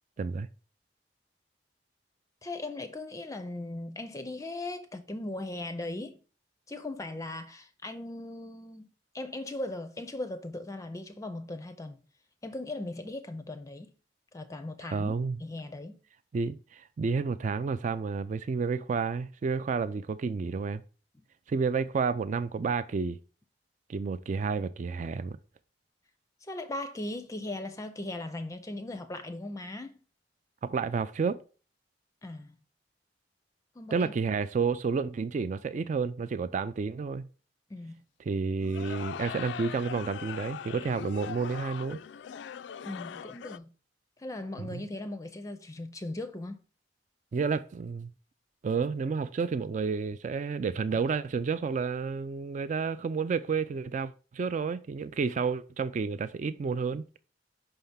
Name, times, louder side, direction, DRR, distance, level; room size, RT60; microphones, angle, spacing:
voice 1, 2.4-6.2 6.7-8.9 9.1-12.0 12.4-13.9 14.3-15.1 15.4-16.0 26.5-30.0 32.2-32.5 33.8-34.1 37.7-38.0 42.8-43.7 44.2-46.6, left 2 dB, 20° left, 0.5 m, -38 dB
voice 2, 14.8-15.4 16.3-20.8 21.5-23.2 23.9-25.4 30.6-31.4 33.9-37.3 38.2-42.0 44.6-44.9 47.3-48.1 48.6-57.0, right 5 dB, 45° right, 0.3 m, -30 dB
sound 1, 38.6-43.6, left 8 dB, 85° left, 0.3 m, -41 dB
5.6 x 3.4 x 5.5 m
head